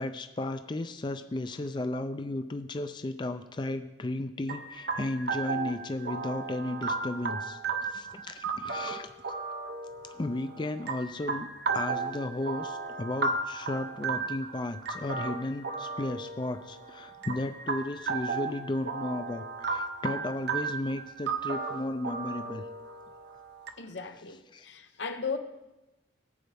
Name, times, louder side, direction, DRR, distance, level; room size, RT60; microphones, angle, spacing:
voice 1, 0.0-9.1 10.1-11.5 11.7-22.6 24.5-24.7, left 2 dB, 25° left, 0.4 m, -34 dB
sound 1, 4.5-23.7, right 4 dB, 70° right, 0.9 m, -35 dB
voice 2, 23.8-25.4, left 5 dB, 85° left, 0.9 m, -36 dB
18.0 x 7.9 x 3.5 m
head